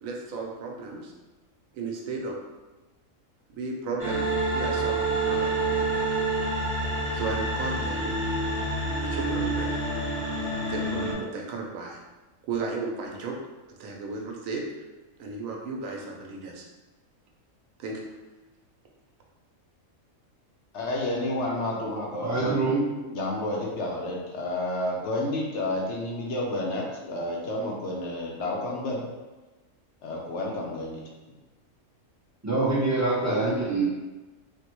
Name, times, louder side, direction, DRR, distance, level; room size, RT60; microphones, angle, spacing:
voice 1, 0.0-1.1 1.7-2.4 3.5-6.0 7.1-8.2 9.0-9.7 10.7-12.0 12.5-13.3 13.7-14.6 15.2-16.6 17.8-18.0, right 4 dB, 80° right, 0 dB, 1.0 m, -34 dB
sound 1, 4.0-11.1, right 2 dB, 5° right, 0.9 m, -27 dB
voice 2, 20.7-22.8 23.1-29.0 30.0-31.1, left 1 dB, 65° left, -2 dB, 0.8 m, -30 dB
voice 3, 22.2-22.8 32.4-33.8, right 2 dB, 25° right, -7 dB, 0.4 m, -25 dB
3.5 x 2.1 x 3.0 m, 1.2 s
omnidirectional pair, 1.4 m